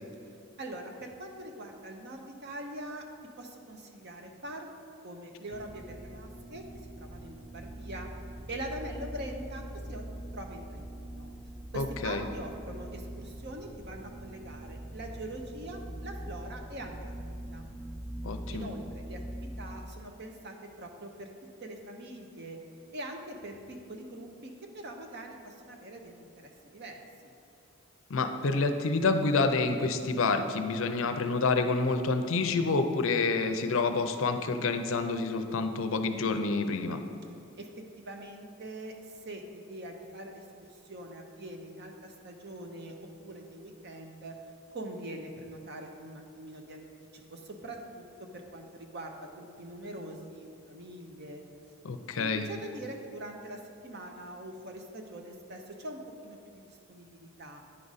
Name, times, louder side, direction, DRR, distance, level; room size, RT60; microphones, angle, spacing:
voice 1, 0.6-3.0 3.4-4.7 5.0-6.6 7.0-8.1 8.5-9.6 9.9-10.0 10.3-11.3 11.7-17.1 17.4-17.6 18.5-21.3 21.6-22.6 22.9-27.3 37.6-37.7 38.0-40.4 40.8-42.9 43.2-44.3 44.7-46.9 47.1-48.0 48.3-51.4 52.1-57.6, right 1 dB, 50° right, 3 dB, 0.8 m, -43 dB
sound 1, 5.5-19.8, right 1 dB, 5° right, 0.3 m, -43 dB
voice 2, 11.7-12.2 18.2-18.7 28.1-37.0 51.8-52.5, left 3 dB, 65° left, 7 dB, 0.5 m, -28 dB
9.9 x 4.9 x 4.0 m, 2.6 s
head